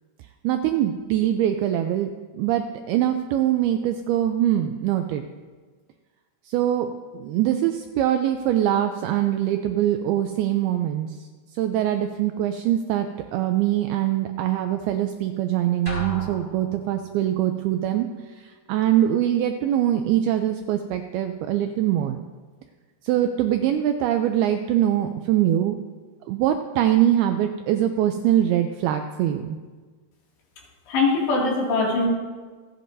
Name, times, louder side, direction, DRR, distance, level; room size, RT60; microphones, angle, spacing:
voice 1, 0.4-5.2 6.5-11.2 11.5-13.1 13.3-22.2 23.0-25.8 26.3-29.6, right 11 dB, 85° right, 7 dB, 2.2 m, -23 dB
sound 1, 15.9-17.3, right 2 dB, 15° right, 3.9 m, -34 dB
voice 2, 30.9-32.1, left 3 dB, 80° left, -3 dB, 4.6 m, -22 dB
26.5 x 9.3 x 2.7 m, 1.5 s
omnidirectional pair, 4.9 m